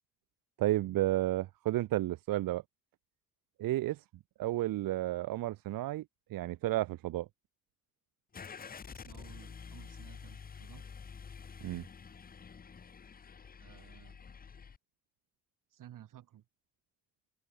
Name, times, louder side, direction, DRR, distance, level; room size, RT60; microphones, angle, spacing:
voice 1, 0.6-2.6 3.6-4.0 4.4-6.0 6.3-7.3 11.6-11.8, right 15 dB, 85° right, 0.8 m, -32 dB
Car / Engine starting, 8.3-14.8, left 6 dB, 25° left, 0.9 m, -49 dB
voice 2, 8.9-10.8 13.6-14.2 15.7-16.4, right 12 dB, 70° right, 2.1 m, -55 dB
open air
cardioid pair, 150°, 33 cm